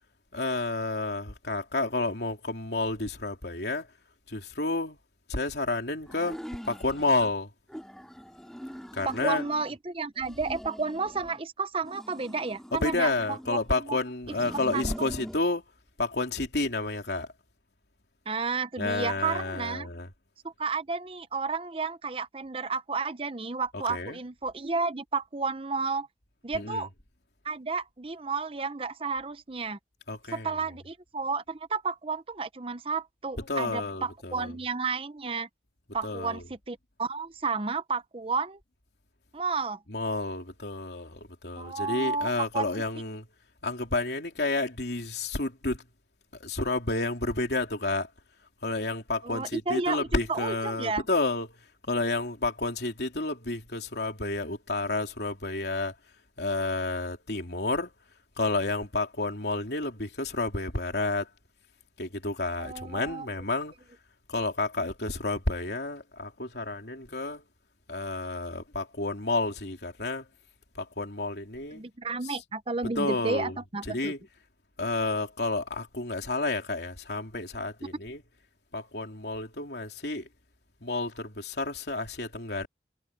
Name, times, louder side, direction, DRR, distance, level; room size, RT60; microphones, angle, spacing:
voice 1, 0.3-3.9 4.3-5.0 5.3-6.4 6.6-7.5 8.9-9.4 12.7-15.6 16.0-17.3 18.8-20.1 23.7-24.2 26.5-26.9 30.1-30.6 33.5-34.6 36.0-36.4 39.9-43.3 43.6-45.8 46.4-48.1 48.6-51.6 51.8-55.9 56.4-57.9 58.4-61.3 62.0-63.7 64.3-67.4 67.9-70.3 70.7-71.8 72.2-72.3 72.9-73.6 73.9-74.2 74.8-78.2 78.7-80.3 80.8-82.7, left 2 dB, 65° left, 3.3 m, -30 dB
sound 1, 6.1-7.3 7.7-9.8 10.2-11.4 11.8-13.7 14.2-15.4, equal, 5° left, 2.4 m, -43 dB
voice 2, 9.0-14.0 14.7-15.1 18.3-19.9 20.4-26.1 26.4-26.9 27.4-29.8 30.3-35.5 35.9-38.6 39.3-39.8 41.6-42.7 49.2-51.0 62.6-63.3 71.7-74.1, right 4 dB, 30° right, 0.8 m, -32 dB
head